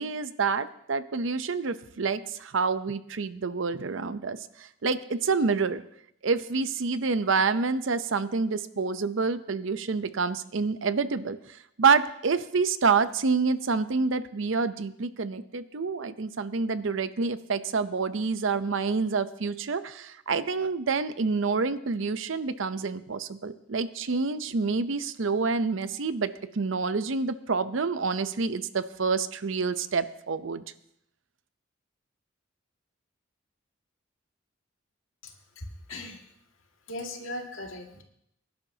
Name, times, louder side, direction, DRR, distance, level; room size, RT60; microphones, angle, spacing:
voice 1, 0.0-5.8 6.2-30.6, right 4 dB, 70° right, 13 dB, 0.6 m, -28 dB
voice 2, 35.2-36.2 36.9-38.0, left 1 dB, 80° left, 1 dB, 2.1 m, -39 dB
22.5 x 11.0 x 2.8 m, 0.72 s
head